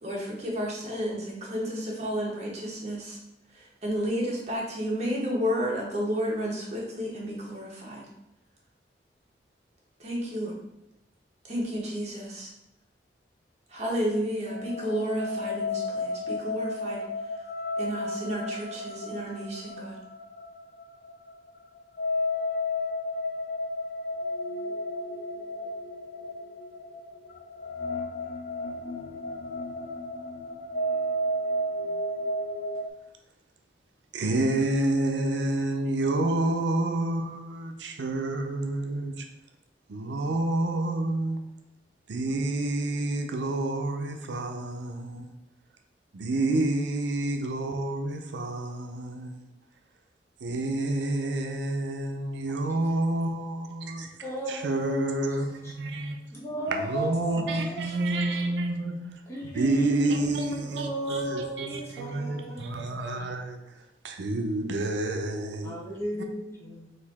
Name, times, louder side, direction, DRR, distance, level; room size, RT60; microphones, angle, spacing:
voice 1, 0.0-3.2 3.5-8.0 10.0-10.5 11.5-12.5 13.7-17.0 17.8-20.0, equal, 40° right, 1.2 m, -31 dB
sound 1, 14.4-32.9, left 1 dB, 50° left, 0.4 m, -33 dB
voice 2, 34.1-39.3 39.9-41.4 42.1-45.3 46.1-49.5 50.4-54.1 54.5-56.2 56.7-59.1 59.4-63.6 64.0-65.8, right 2 dB, 90° right, 0.5 m, -29 dB
voice 3, 54.2-55.7 56.3-57.9 59.3-63.1 65.6-67.0, right 1 dB, 15° left, 1.2 m, -35 dB
4.1 x 2.6 x 4.1 m
head